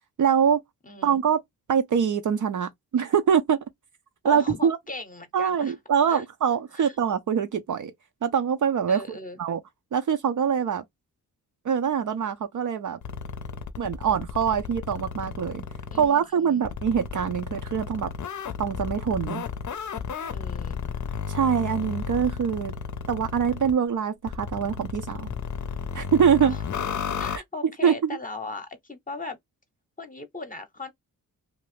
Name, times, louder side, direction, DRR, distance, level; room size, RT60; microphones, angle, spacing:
voice 1, 0.2-0.6 1.0-1.4 1.7-3.6 4.2-4.8 5.3-7.9 8.2-9.6 9.9-10.8 11.6-13.0 13.8-15.6 16.0-18.1 18.6-19.4 21.3-22.8 23.1-25.3 25.9-26.6 27.8-28.1, right 7 dB, 55° right, 0.5 m, -24 dB
voice 2, 0.8-1.2 4.3-5.7 6.1-6.2 6.7-7.0 8.9-9.4 15.9-16.7 20.3-20.9 26.4-26.6 27.2-29.4 30.0-30.9, left 2 dB, 25° left, 0.8 m, -38 dB
sound 1, 13.0-16.1 16.6-23.7 24.3-27.4, left 6 dB, 55° left, 0.6 m, -33 dB
2.6 x 2.3 x 3.3 m
cardioid pair, 80°, 36 cm